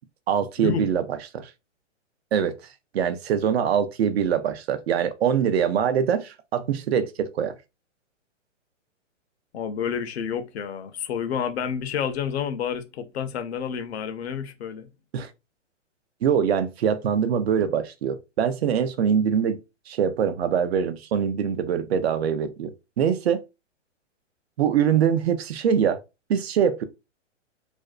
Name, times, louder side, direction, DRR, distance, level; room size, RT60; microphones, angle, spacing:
voice 1, 0.3-1.0 1.3-1.5 2.3-2.5 2.9-7.5 15.1-15.3 16.2-19.6 19.9-23.4 24.6-26.0 26.3-26.8, right 8 dB, 60° right, 0.5 m, -23 dB
voice 2, 9.5-14.9, left 8 dB, 60° left, 0.6 m, -29 dB
2.5 x 2.1 x 2.3 m
hypercardioid pair, 145°, 37 cm